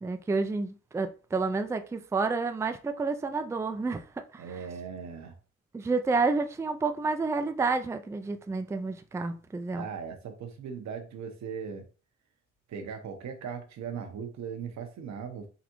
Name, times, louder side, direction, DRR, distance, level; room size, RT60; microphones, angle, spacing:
voice 1, 0.0-4.0 4.3-4.4 5.7-9.9, right 4 dB, 10° right, 0.4 m, -29 dB
voice 2, 4.4-5.4 9.8-11.9 12.7-15.5, right 6 dB, 65° right, 1.0 m, -38 dB
4.0 x 3.4 x 3.0 m
cardioid pair, 90°, 30 cm